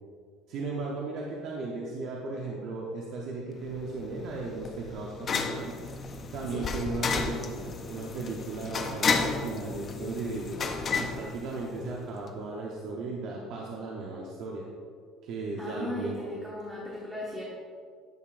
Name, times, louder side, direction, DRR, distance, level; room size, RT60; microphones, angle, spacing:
voice 1, 0.5-5.8 6.3-14.6 15.2-16.2, right 3 dB, 60° right, -2 dB, 0.9 m, -36 dB
sound 1, 3.7-12.0, left 4 dB, 30° left, 0.6 m, -33 dB
voice 2, 15.6-17.4, equal, 5° right, -6 dB, 1.2 m, -37 dB
10.5 x 6.7 x 2.5 m, 2.2 s
cardioid pair, 140°, 0 cm